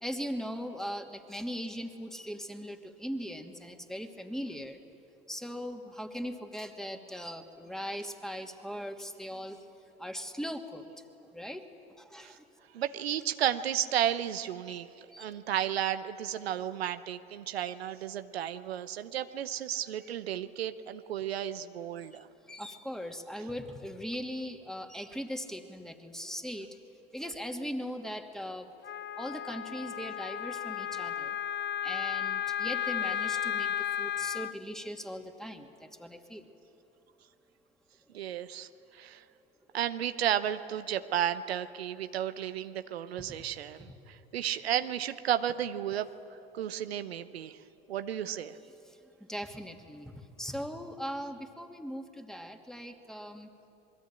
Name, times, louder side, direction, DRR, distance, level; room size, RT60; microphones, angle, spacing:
voice 1, 0.0-4.8 5.3-9.6 10.0-10.8 11.3-11.6 12.0-12.5 14.7-14.8 15.1-15.3 22.5-26.7 27.1-28.7 29.2-31.4 31.8-36.4 43.9-44.0 48.9-53.5, equal, ahead, 4 dB, 2.6 m, -39 dB
voice 2, 12.7-22.3 38.1-39.2 39.7-46.1 46.5-47.6 47.9-48.6, right 10 dB, 85° right, 10 dB, 0.8 m, -33 dB
Wind instrument woodwind instrument, 28.8-34.5, left 10 dB, 35° left, 0.7 m, -34 dB
27.0 x 21.5 x 9.0 m, 2.7 s
hypercardioid pair, 60°, 30 cm